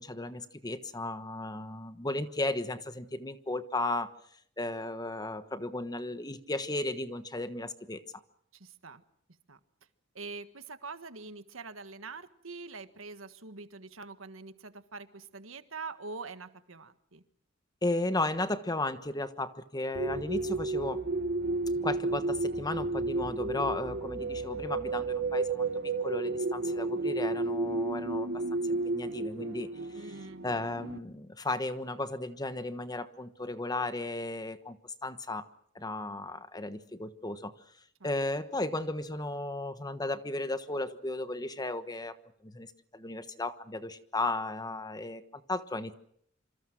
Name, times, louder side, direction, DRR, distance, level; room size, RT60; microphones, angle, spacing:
voice 1, 0.0-4.1 4.6-8.0 17.8-21.0 21.8-25.7 26.0-29.7 30.4-35.5 35.7-37.5 38.0-42.1 42.4-45.9, left 2 dB, 20° left, 11 dB, 1.2 m, -35 dB
voice 2, 8.5-9.0 9.5-9.6 10.1-17.2 29.9-30.4 38.0-38.1, right 4 dB, 80° right, 10 dB, 1.6 m, -44 dB
sound 1, 19.9-31.0, right 3 dB, 60° right, 1.4 m, -32 dB
27.0 x 25.5 x 6.2 m, 0.67 s
head